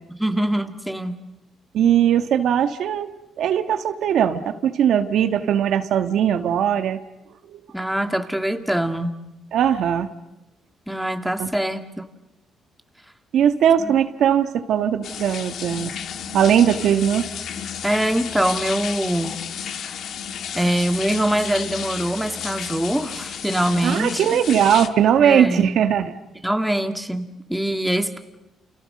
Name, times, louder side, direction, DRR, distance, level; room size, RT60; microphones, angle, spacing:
voice 1, 0.2-1.1 7.7-9.2 10.9-12.0 13.8-13.9 17.8-19.4 19.9-20.0 20.5-24.4 25.2-25.8 26.4-28.2, right 1 dB, 5° right, 6 dB, 2.1 m, -23 dB
voice 2, 1.7-3.1 3.4-7.0 7.5-7.6 9.5-10.1 11.4-11.5 13.3-15.9 16.3-17.3 23.8-26.1, right 9 dB, 75° right, 8 dB, 1.5 m, -19 dB
sound 1, 15.0-24.9, left 8 dB, 70° left, 1.6 m, -32 dB
29.5 x 29.0 x 6.6 m, 0.98 s
cardioid pair, 90°, 0 cm